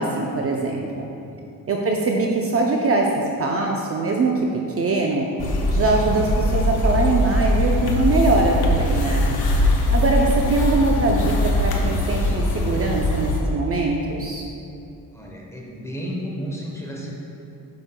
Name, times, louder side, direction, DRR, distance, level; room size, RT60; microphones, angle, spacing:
voice 1, 0.0-1.1 1.7-4.3 4.8-5.3 5.7-9.3 9.9-14.4, right 3 dB, 40° right, 0 dB, 0.6 m, -22 dB
sound 1, 5.4-13.4, left 1 dB, 80° left, 1.0 m, -21 dB
voice 2, 15.1-17.1, equal, 10° left, -3 dB, 1.1 m, -32 dB
9.7 x 6.3 x 2.2 m, 2.6 s
cardioid pair, 115°, 36 cm